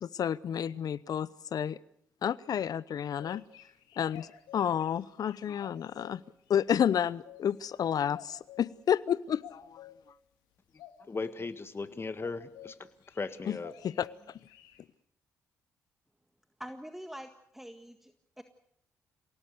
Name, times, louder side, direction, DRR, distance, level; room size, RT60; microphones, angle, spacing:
voice 1, 0.0-1.8 2.2-3.4 4.0-4.3 4.5-6.2 6.5-9.8 13.5-13.6 13.8-14.1, left 9 dB, 60° left, 20 dB, 0.8 m, -30 dB
sound 1, 3.0-6.2 6.9-7.6 8.1-8.7 9.4-10.0 10.8-11.4 12.2-12.7 13.0-14.8, left 12 dB, 80° left, 2.0 m, -51 dB
voice 2, 11.1-12.8 13.2-13.7, left 4 dB, 35° left, 11 dB, 1.7 m, -37 dB
voice 3, 16.6-18.4, equal, 5° right, 7 dB, 1.8 m, -45 dB
28.5 x 18.0 x 6.8 m, 0.72 s
hypercardioid pair, 45°, 7 cm